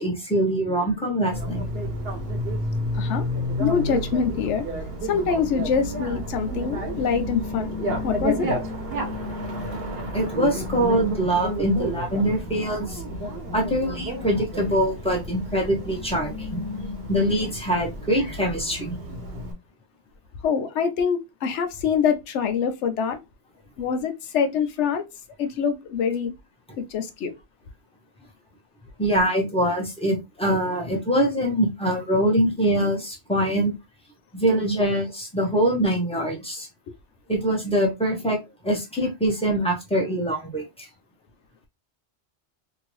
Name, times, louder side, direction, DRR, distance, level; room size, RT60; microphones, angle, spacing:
voice 1, 0.0-1.7 10.1-13.0 13.5-16.6 17.1-18.9 29.0-33.7 34.3-36.7 37.3-38.4 38.6-40.9, right 1 dB, 5° left, 1.0 m, -23 dB
Bicycle, 1.3-19.5, equal, 60° right, 1.1 m, -31 dB
voice 2, 2.9-3.3 3.6-4.6 5.0-7.7 8.0-8.5 20.4-23.2 23.8-25.0 25.4-26.3 26.8-27.3, left 6 dB, 90° left, 0.9 m, -25 dB
2.9 x 2.6 x 3.0 m
omnidirectional pair, 1.2 m